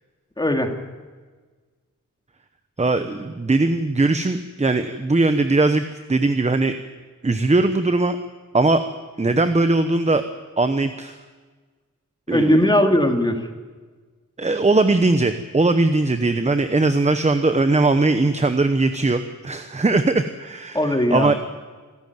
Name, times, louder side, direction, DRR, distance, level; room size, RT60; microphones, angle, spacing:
voice 1, 0.4-0.7 12.3-13.4 20.7-21.3, left 1 dB, 15° left, 5 dB, 2.3 m, -19 dB
voice 2, 2.8-5.8 6.1-6.7 7.2-8.2 8.5-8.8 9.2-10.2 10.6-11.2 12.3-12.7 14.4-21.3, right 2 dB, 20° right, 9 dB, 1.0 m, -20 dB
26.0 x 13.0 x 9.5 m, 1.4 s
wide cardioid pair, 125°, 31 cm